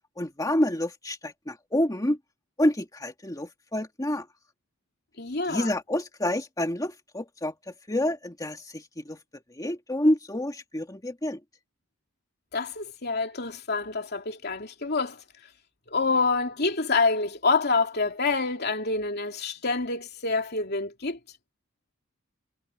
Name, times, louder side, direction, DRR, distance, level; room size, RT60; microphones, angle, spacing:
voice 1, 0.2-2.2 2.6-4.3 5.5-7.5 7.9-9.2 9.6-11.4, left 1 dB, 20° left, 2.0 m, -28 dB
voice 2, 5.2-5.7 12.5-15.2 15.9-21.2, left 4 dB, 55° left, 3.1 m, -27 dB
head